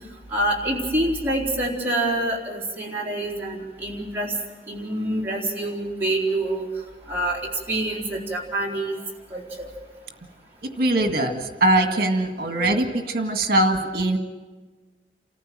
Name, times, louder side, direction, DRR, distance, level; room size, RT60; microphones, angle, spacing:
voice 1, 0.3-4.3 4.7-6.7 7.1-7.4 7.7-9.0 9.3-9.7, right 1 dB, 10° right, -4 dB, 3.9 m, -26 dB
voice 2, 10.8-14.2, right 1 dB, 55° right, 4 dB, 1.9 m, -21 dB
29.0 x 14.5 x 7.6 m, 1.4 s
head